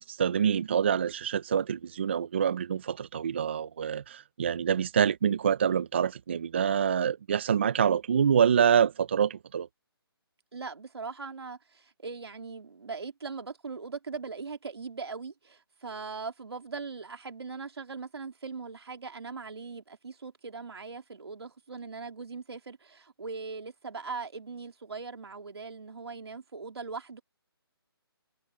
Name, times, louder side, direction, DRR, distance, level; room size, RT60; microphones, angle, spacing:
voice 1, 0.1-9.7, right 8 dB, 30° right, 0.4 m, -26 dB
voice 2, 10.5-27.2, right 4 dB, 85° right, 2.7 m, -40 dB
hypercardioid pair, 170°, 13 cm